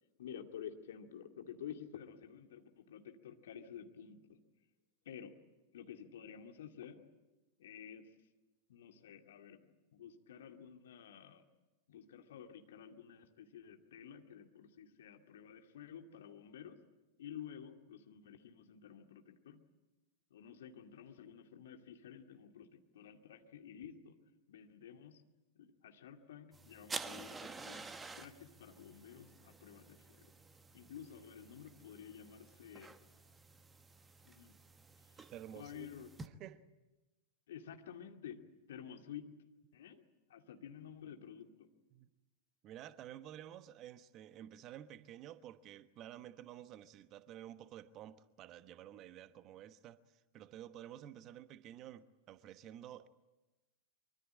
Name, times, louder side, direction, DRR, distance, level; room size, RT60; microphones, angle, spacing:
voice 1, 0.2-4.4 5.1-5.3 5.7-7.0 7.6-8.1 8.7-11.5 11.9-16.8 17.2-19.6 20.3-24.2 24.5-25.2 25.6-27.9 28.2-30.3 30.7-33.0 34.3-34.5 35.5-36.1 37.5-38.4 38.7-39.3 39.7-40.0 40.3-41.7, left 8 dB, 60° left, 2.3 m, -51 dB
sound 1, 26.5-36.3, right 3 dB, 15° right, 1.3 m, -50 dB
voice 2, 35.2-35.9 36.4-36.6 41.9-42.1 42.6-50.0 50.3-53.1, right 11 dB, 35° right, 1.1 m, -51 dB
24.5 x 24.5 x 8.9 m
figure-of-eight pair, 90°, 0 cm